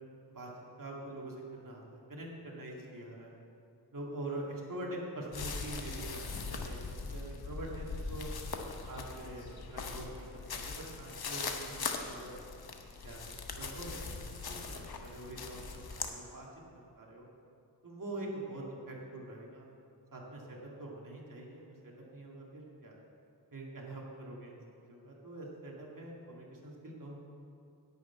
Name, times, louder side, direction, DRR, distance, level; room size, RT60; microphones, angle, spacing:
voice 1, 0.8-3.5 3.9-8.3 8.9-12.3 13.0-13.2 13.5-16.5 17.0-17.3 17.8-19.7 20.1-23.0 23.5-27.2, right 1 dB, 55° right, -3 dB, 2.3 m, -45 dB
sound 1, 5.3-16.1, left 4 dB, 65° left, 1.0 m, -41 dB
10.5 x 5.8 x 8.3 m, 2.5 s
wide cardioid pair, 65°, 40 cm